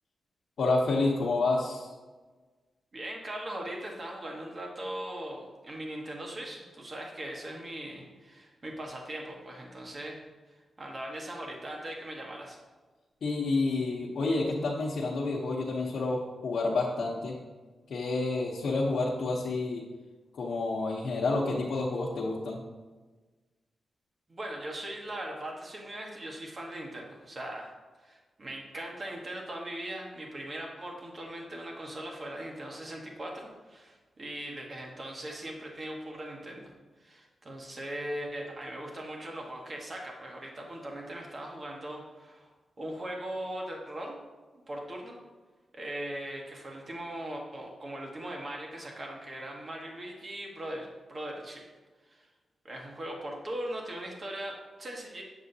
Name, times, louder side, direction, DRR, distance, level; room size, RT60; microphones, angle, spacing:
voice 1, 0.6-1.9 13.2-17.3 17.9-19.8 20.3-22.6, left 3 dB, 75° left, -5 dB, 0.9 m, -29 dB
voice 2, 2.9-10.2 10.5-12.6 24.3-27.7 28.0-36.7 37.0-42.5 42.8-44.1 44.7-45.2 45.7-51.6 52.1-52.3 52.6-55.2, right 1 dB, 40° right, 0 dB, 1.3 m, -39 dB
7.2 x 7.1 x 2.7 m, 1.3 s
cardioid pair, 95°, 0 cm